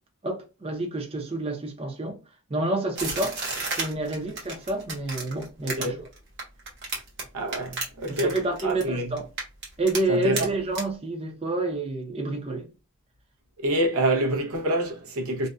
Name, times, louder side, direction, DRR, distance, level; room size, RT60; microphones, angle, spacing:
voice 1, 0.2-2.2 2.5-3.4 3.8-6.0 8.1-9.3 9.8-12.7, right 2 dB, 25° right, 0.6 m, -28 dB
sound 1, 2.9-7.2 7.5-8.9 9.2-10.0 10.4-10.5 10.7-10.8, right 3 dB, 50° right, 1.0 m, -31 dB
voice 2, 7.3-8.4 8.6-9.1 10.1-10.4 13.6-15.5, right 1 dB, 80° right, 0.7 m, -26 dB
2.6 x 2.2 x 2.2 m
head